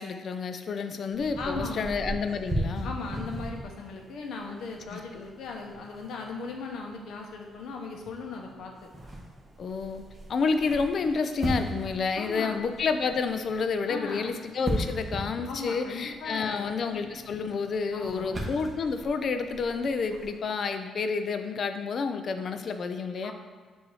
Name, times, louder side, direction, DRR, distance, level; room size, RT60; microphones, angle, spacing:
voice 1, 0.0-2.9 4.9-5.0 9.6-10.0 10.3-23.3, left 5 dB, 55° left, 8 dB, 0.5 m, -29 dB
sound 1, 1.1-20.4, right 1 dB, 20° right, 1.4 m, -39 dB
voice 2, 1.4-1.9 2.8-8.9 12.1-12.6 13.9-14.3 14.8-14.9 15.5-17.1 17.9-18.3 23.2-23.3, left 4 dB, 75° left, 1 dB, 0.9 m, -38 dB
7.2 x 2.8 x 4.8 m, 1.6 s
cardioid pair, 90°, 0 cm